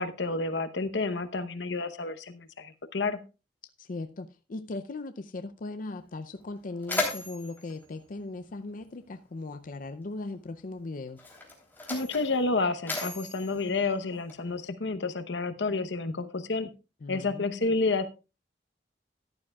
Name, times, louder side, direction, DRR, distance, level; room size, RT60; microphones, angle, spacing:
voice 1, 0.0-3.2 11.9-16.7 17.1-18.1, left 3 dB, 85° left, 0.9 m, -30 dB
voice 2, 3.8-11.3 17.0-17.7, left 2 dB, 50° left, 0.5 m, -38 dB
Mechanisms, 5.9-6.0 6.4-9.1 10.1-10.3 11.1-14.7, left 2 dB, 10° left, 3.2 m, -37 dB
14.0 x 11.0 x 2.3 m
head